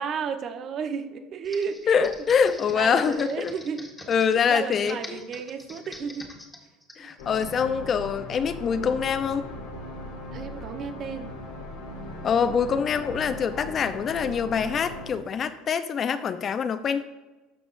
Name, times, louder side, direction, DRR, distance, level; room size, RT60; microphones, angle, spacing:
voice 1, 0.0-2.1 2.5-3.9 4.5-6.3 10.3-11.3, right 6 dB, 45° right, 8 dB, 0.8 m, -33 dB
Computer keyboard, 1.4-7.6, left 1 dB, 10° left, 1.6 m, -45 dB
voice 2, 1.9-3.5 4.1-5.2 7.0-9.4 12.2-17.0, left 6 dB, 40° left, 11 dB, 0.5 m, -25 dB
sound 1, 7.2-15.1, left 1 dB, 80° left, 2.0 m, -39 dB
12.0 x 6.1 x 2.6 m, 1.1 s
hypercardioid pair, 80°, 0 cm